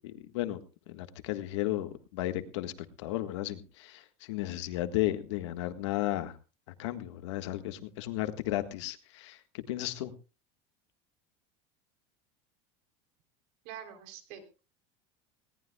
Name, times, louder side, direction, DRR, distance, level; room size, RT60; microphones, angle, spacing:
voice 1, 0.0-0.6 0.9-2.7 3.0-6.4 6.8-10.1, left 15 dB, 85° left, 9 dB, 1.6 m, -34 dB
voice 2, 13.7-14.6, right 9 dB, 65° right, 7 dB, 3.5 m, -46 dB
20.0 x 18.0 x 2.3 m, 0.32 s
supercardioid pair, 145°, 15 cm